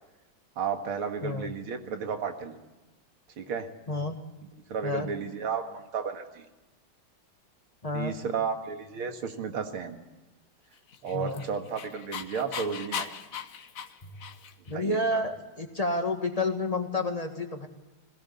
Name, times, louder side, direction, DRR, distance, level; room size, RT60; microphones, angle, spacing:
voice 1, 0.6-2.5 3.4-3.7 4.7-6.5 7.9-10.0 11.0-13.1 14.7-15.2, right 6 dB, 85° right, 6 dB, 2.7 m, -33 dB
voice 2, 7.8-8.1 11.1-11.4 14.7-17.7, left 2 dB, 20° left, 5 dB, 1.6 m, -30 dB
Dog, 10.9-14.7, left 7 dB, 50° left, 1.2 m, -38 dB
21.0 x 17.5 x 9.7 m, 1.1 s
omnidirectional pair, 2.3 m